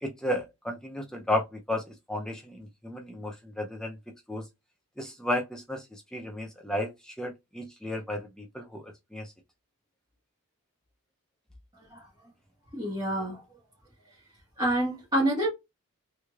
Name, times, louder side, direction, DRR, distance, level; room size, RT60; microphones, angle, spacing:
voice 1, 0.0-1.8 2.1-4.0 4.3-4.4 5.0-9.3, left 1 dB, 5° left, 0.5 m, -33 dB
voice 2, 12.7-13.4 14.6-15.5, right 1 dB, 20° right, 1.5 m, -27 dB
3.5 x 3.2 x 2.4 m
head